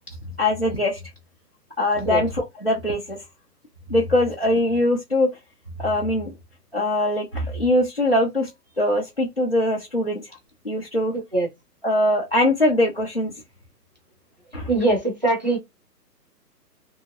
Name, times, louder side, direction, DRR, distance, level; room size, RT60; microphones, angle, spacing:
voice 1, 0.4-1.0 1.8-3.2 3.9-5.3 5.8-6.3 6.7-8.5 8.8-10.2 10.6-11.1 11.8-13.3 14.5-14.7, left 1 dB, 40° left, 0.4 m, -22 dB
voice 2, 14.7-15.6, right 2 dB, 30° right, 0.6 m, -21 dB
2.8 x 2.7 x 2.5 m
hypercardioid pair, 175°, 49 cm